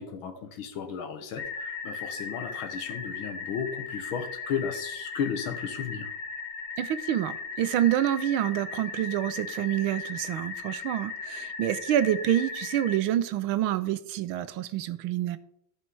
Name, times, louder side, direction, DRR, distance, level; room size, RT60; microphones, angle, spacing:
voice 1, 0.0-6.1, left 7 dB, 70° left, 8 dB, 1.9 m, -34 dB
sound 1, 1.4-13.0, left 5 dB, 45° left, 1.8 m, -37 dB
voice 2, 6.8-15.4, right 12 dB, 80° right, 14 dB, 1.5 m, -27 dB
14.5 x 5.6 x 4.6 m, 0.71 s
omnidirectional pair, 2.3 m